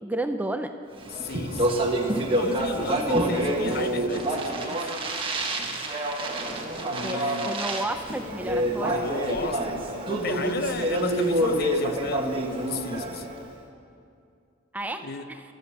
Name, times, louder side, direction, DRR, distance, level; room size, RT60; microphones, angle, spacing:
voice 1, 0.0-0.7 7.0-9.0 9.4-9.5 14.7-15.4, right 1 dB, 10° right, 0.4 m, -32 dB
Speech, 1.0-13.4, right 1 dB, 25° right, 1.4 m, -27 dB
voice 2, 1.1-1.9 2.3-5.0 6.9-7.6 8.8-13.3 15.0-15.3, left 3 dB, 50° left, 0.7 m, -34 dB
13.5 x 12.0 x 8.5 m
head